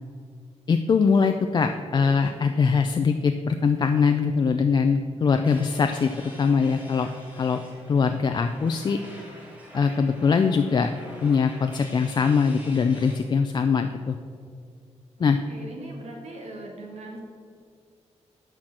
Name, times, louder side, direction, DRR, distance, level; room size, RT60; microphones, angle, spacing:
voice 1, 0.7-6.1 6.4-7.1 7.4-7.6 7.9-9.0 9.7-10.9 11.2-14.2 15.2-15.4, left 5 dB, 40° left, 6 dB, 0.4 m, -22 dB
sound 1, 5.4-13.2, equal, 10° right, 2.1 m, -47 dB
voice 2, 15.2-17.2, right 2 dB, 70° right, 0 dB, 1.9 m, -40 dB
11.0 x 4.5 x 7.3 m, 2.2 s
wide cardioid pair, 160°, 12 cm